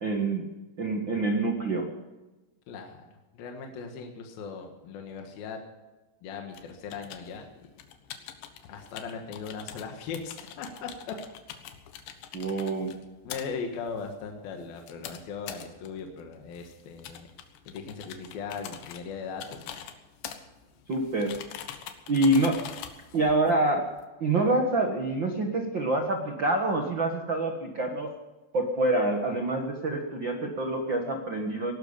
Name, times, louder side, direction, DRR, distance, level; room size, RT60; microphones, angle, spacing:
voice 1, 0.0-0.4 0.8-1.8 12.3-12.9 20.9-21.4 22.1-22.6 23.1-23.9 24.2-28.1 28.5-31.7, right 2 dB, 75° right, 3 dB, 1.0 m, -26 dB
voice 2, 2.7-3.0 3.3-5.6 6.2-7.7 8.7-11.1 13.2-17.3 17.7-19.9, left 5 dB, 65° left, 3 dB, 3.2 m, -39 dB
sound 1, 6.5-24.1, left 9 dB, 80° left, 3.5 m, -45 dB
19.5 x 12.0 x 5.6 m, 1.1 s
omnidirectional pair, 5.0 m